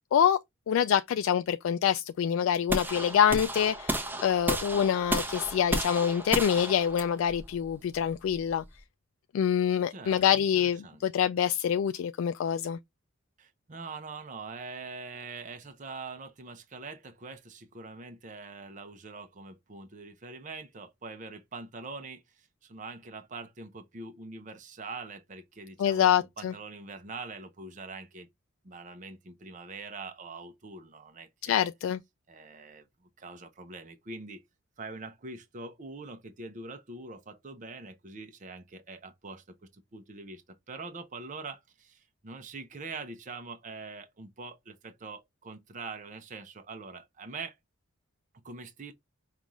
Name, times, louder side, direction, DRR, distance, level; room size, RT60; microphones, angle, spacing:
voice 1, 0.7-8.6 9.3-12.8 25.8-26.5 31.4-32.0, left 8 dB, 80° left, 0.3 m, -26 dB
sound 1, 2.7-8.8, right 1 dB, 10° right, 0.8 m, -33 dB
voice 2, 9.9-11.0 13.4-28.3 28.6-31.7 32.3-34.4 34.8-47.6 48.3-48.9, right 3 dB, 40° right, 0.6 m, -44 dB
5.2 x 2.4 x 3.0 m
head